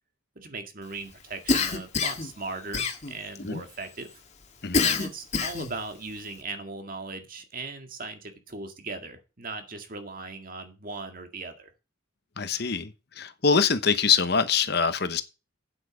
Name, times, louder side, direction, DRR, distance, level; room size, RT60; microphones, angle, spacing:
voice 1, 0.4-4.1 4.8-11.7, right 3 dB, 45° right, 2.0 m, -38 dB
Cough, 1.5-2.3 2.7-3.4 4.7-5.8, left 4 dB, 35° left, 1.7 m, -25 dB
voice 2, 12.4-12.9 13.2-15.2, left 5 dB, 55° left, 1.0 m, -24 dB
9.1 x 8.0 x 5.0 m
head